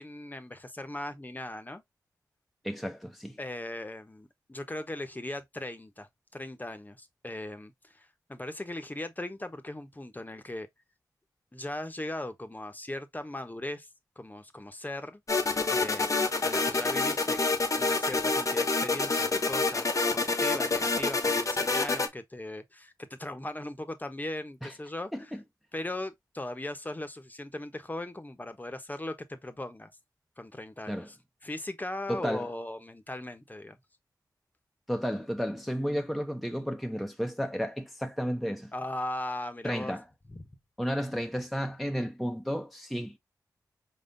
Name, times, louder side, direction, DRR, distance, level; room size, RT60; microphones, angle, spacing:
voice 1, 0.0-1.8 3.4-10.7 11.5-13.9 14.2-15.2 15.7-17.4 17.8-25.3 25.7-29.9 30.4-31.2 31.4-33.8 38.7-39.9 40.3-40.5, left 1 dB, 25° left, 1.0 m, -38 dB
voice 2, 2.6-3.4 24.6-24.7 25.1-25.4 30.9-31.1 32.1-32.5 34.9-38.7 39.6-40.0 40.8-43.2, equal, ahead, 0.8 m, -32 dB
sound 1, 15.3-22.1, left 3 dB, 50° left, 1.0 m, -27 dB
4.8 x 3.7 x 2.6 m
cardioid pair, 50°, 7 cm